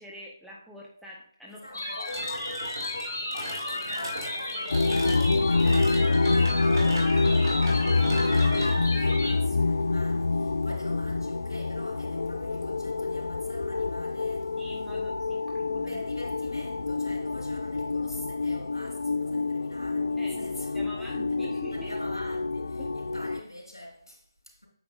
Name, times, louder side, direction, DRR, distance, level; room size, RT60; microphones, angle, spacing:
voice 1, 0.0-2.2 14.6-16.0 20.2-20.5 20.7-21.9 22.8-23.0, left 1 dB, ahead, 0.9 m, -45 dB
voice 2, 1.5-3.1 3.6-7.6 8.0-14.6 15.9-21.1 21.4-24.7, left 1 dB, 85° left, 3.2 m, -45 dB
sound 1, 1.7-9.3, left 1 dB, 45° left, 2.3 m, -33 dB
sound 2, 2.1-10.7, right 1 dB, 70° right, 3.0 m, -40 dB
sound 3, 4.7-23.4, left 3 dB, 65° left, 0.3 m, -27 dB
9.3 x 6.7 x 2.5 m
figure-of-eight pair, 150°, 2 cm